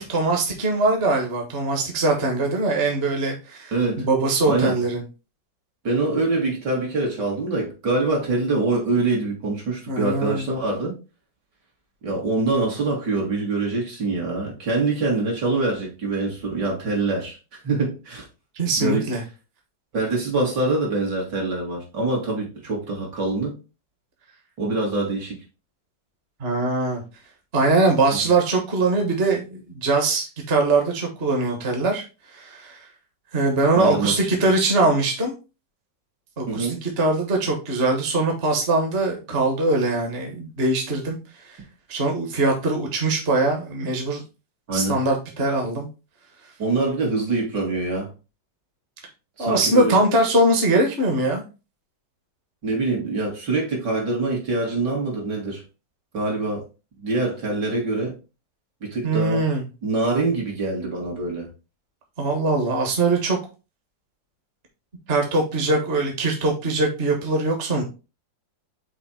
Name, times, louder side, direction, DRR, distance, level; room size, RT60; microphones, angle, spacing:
voice 1, 0.0-5.0 9.9-10.5 18.5-19.2 26.4-27.0 27.5-32.0 32.3-32.8 33.3-35.3 36.4-41.2 41.4-41.6 41.9-44.2 44.7-45.9 49.4-51.4 59.0-59.6 62.2-63.4 65.1-67.8, right 2 dB, 35° right, 1.5 m, -22 dB
voice 2, 3.7-4.1 4.4-4.7 5.8-10.9 12.0-18.2 18.8-19.1 19.9-23.5 24.6-25.4 33.7-34.1 36.5-36.8 44.7-45.0 46.6-48.1 49.4-50.0 52.6-55.6 56.1-56.6 57.0-58.1 58.8-59.5 59.8-61.5, right 3 dB, 65° right, 2.8 m, -24 dB
5.9 x 3.9 x 4.3 m
omnidirectional pair, 2.0 m